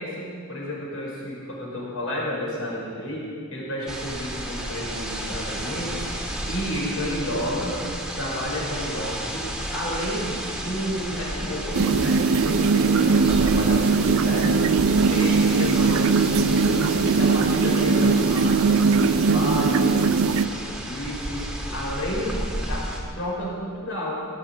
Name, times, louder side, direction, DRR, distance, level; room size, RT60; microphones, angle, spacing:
voice 1, 0.0-6.1 6.4-7.8 8.1-22.9 23.1-24.2, equal, 70° left, -4 dB, 5.2 m, -31 dB
sound 1, 3.9-23.0, right 1 dB, 5° right, 1.7 m, -32 dB
sound 2, 11.7-20.5, right 4 dB, 70° right, 0.5 m, -20 dB
17.0 x 8.4 x 8.3 m, 2.1 s
head